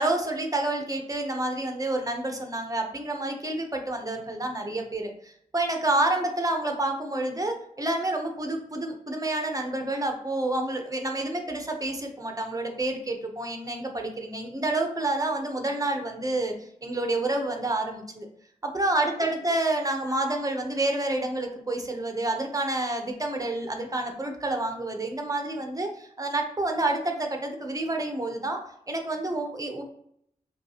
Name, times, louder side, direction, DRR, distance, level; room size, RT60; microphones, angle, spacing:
voice 1, 0.0-16.5 16.8-18.3 18.6-28.6 28.9-29.8, right 2 dB, 25° right, 3 dB, 0.8 m, -29 dB
5.6 x 2.4 x 2.8 m, 0.68 s
cardioid pair, 60°, 14 cm